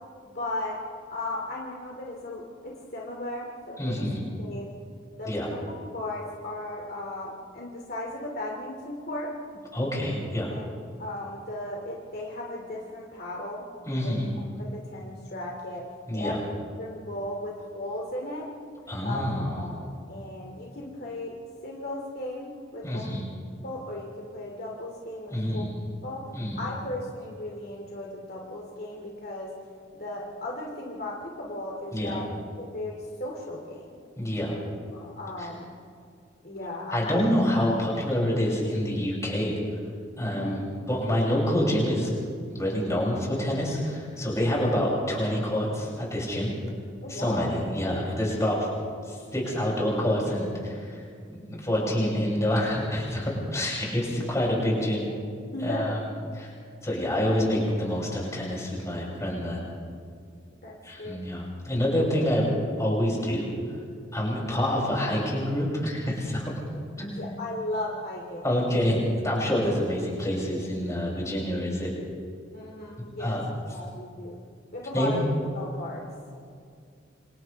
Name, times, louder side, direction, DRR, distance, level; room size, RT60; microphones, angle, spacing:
voice 1, 0.3-0.8 1.1-4.1 4.4-4.7 5.2-5.6 5.9-9.3 10.5-10.7 11.0-13.6 14.0-14.2 14.5-15.9 16.1-16.4 16.8-18.5 19.0-21.4 21.6-23.2 23.6-25.7 26.0-26.3 26.6-29.5 29.9-32.3 32.6-33.9 34.9-35.7 36.4-37.2 40.4-40.5 47.0-47.6 55.1-56.0 60.6-61.2 67.2-68.4 72.5-73.4 73.7-74.4 74.7-75.3 75.5-76.0, left 1 dB, 50° left, -2 dB, 2.6 m, -36 dB
voice 2, 3.8-4.2 5.2-5.5 9.7-10.5 13.8-14.3 16.1-16.4 18.9-19.6 22.8-23.3 25.3-25.7 26.3-26.6 31.9-32.2 34.2-34.6 35.4-35.5 36.9-39.5 40.2-42.1 42.5-46.5 47.1-48.7 49.1-51.0 51.3-55.1 55.6-56.0 56.3-56.5 56.8-59.6 60.8-63.5 64.1-66.6 67.0-67.2 68.4-71.9 73.2-73.5 74.9-75.2, equal, 15° left, -4 dB, 6.7 m, -27 dB
28.5 x 26.5 x 3.5 m, 2.3 s
head